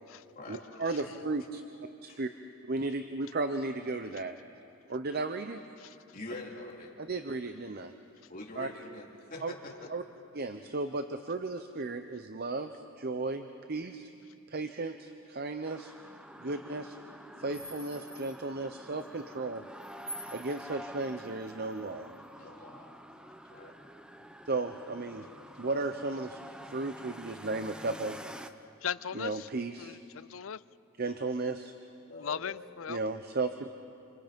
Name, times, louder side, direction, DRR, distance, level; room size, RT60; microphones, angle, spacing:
voice 1, 0.5-1.6 2.0-2.3 2.7-4.3 4.9-5.6 7.0-7.9 8.6-8.7 9.4-9.5 9.9-10.0 10.3-14.1 14.5-15.9 16.4-17.0 17.4-19.6 20.3-22.1 24.5-25.3 25.6-26.4 26.7-28.2 29.1-30.0 31.0-31.7 32.9-33.7, right 3 dB, 50° right, 8 dB, 0.8 m, -35 dB
voice 2, 6.1-6.9 8.3-9.9 13.4-13.5 14.7-14.8 16.4-16.5 22.4-22.9 23.5-23.8 32.1-32.6, left 2 dB, 45° left, -1 dB, 3.5 m, -45 dB
sound 1, 15.7-28.5, right 1 dB, 5° right, 0.9 m, -47 dB
voice 3, 28.8-29.3 29.8-30.6 32.1-33.0, left 7 dB, 70° left, 18 dB, 0.5 m, -37 dB
28.5 x 27.5 x 5.3 m, 2.7 s
head